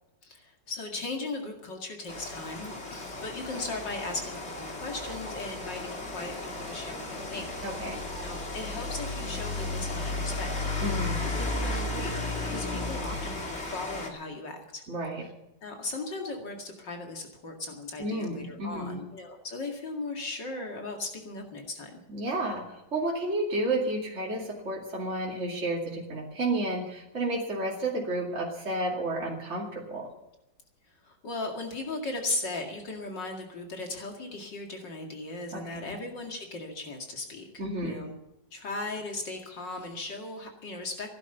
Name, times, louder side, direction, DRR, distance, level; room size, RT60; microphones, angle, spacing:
voice 1, 0.2-7.7 8.2-14.8 15.6-22.0 31.0-38.1 38.5-41.1, left 2 dB, 70° left, 2 dB, 2.9 m, -37 dB
Rain, 2.1-14.1, left 2 dB, 35° left, 2.9 m, -34 dB
voice 2, 7.6-8.0 10.8-11.2 14.9-15.2 18.0-19.0 22.1-30.1 35.5-36.0 37.6-38.1, right 1 dB, 35° right, -3 dB, 2.8 m, -31 dB
16.0 x 11.5 x 6.9 m, 0.91 s
omnidirectional pair, 2.0 m